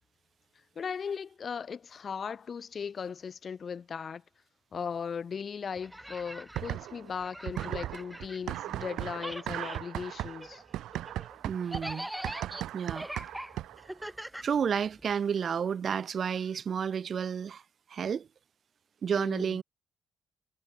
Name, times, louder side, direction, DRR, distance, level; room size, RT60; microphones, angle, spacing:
voice 1, 0.8-4.2 4.7-10.6 19.2-19.6, left 6 dB, 45° left, 0.5 m, -37 dB
sound 1, 5.8-8.9 9.1-15.1, right 1 dB, 5° right, 0.5 m, -43 dB
sound 2, 6.5-7.1 7.5-13.9, right 13 dB, 85° right, 0.9 m, -37 dB
voice 2, 11.4-12.1 12.7-13.1 14.0-14.1 14.4-17.6 17.9-18.3 19.0-19.6, right 7 dB, 50° right, 1.3 m, -31 dB
cardioid pair, 90°, 0 cm